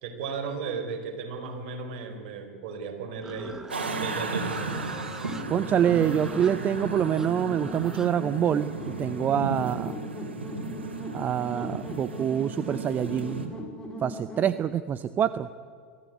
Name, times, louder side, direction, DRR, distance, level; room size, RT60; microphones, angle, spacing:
voice 1, 0.0-4.8, right 5 dB, 55° right, 4 dB, 4.3 m, -35 dB
Livestock farm animals working animals, 3.2-9.2, right 2 dB, 10° right, 1.3 m, -45 dB
sound 1, 3.7-13.5, right 3 dB, 80° right, 3.0 m, -35 dB
voice 2, 5.5-10.0 11.1-13.5 14.0-15.5, right 9 dB, 30° right, 14 dB, 0.7 m, -26 dB
sound 2, 5.8-14.5, equal, 10° left, 5.4 m, -39 dB
23.0 x 14.5 x 9.5 m, 2.1 s
figure-of-eight pair, 90°, 6 cm